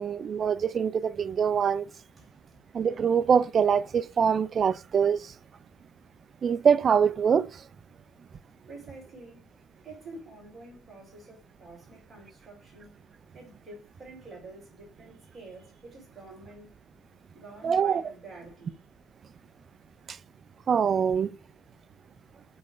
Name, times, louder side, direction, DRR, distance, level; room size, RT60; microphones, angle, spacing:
voice 1, 0.0-1.9 2.7-5.3 6.4-7.6 17.6-18.1 20.1-20.2 20.7-21.4, right 7 dB, 30° right, 0.4 m, -24 dB
voice 2, 1.9-2.6 8.7-9.5 9.8-12.9 13.3-16.7 17.3-18.8, right 2 dB, 15° right, 4.0 m, -48 dB
8.0 x 3.3 x 4.8 m
cardioid pair, 170°, 0 cm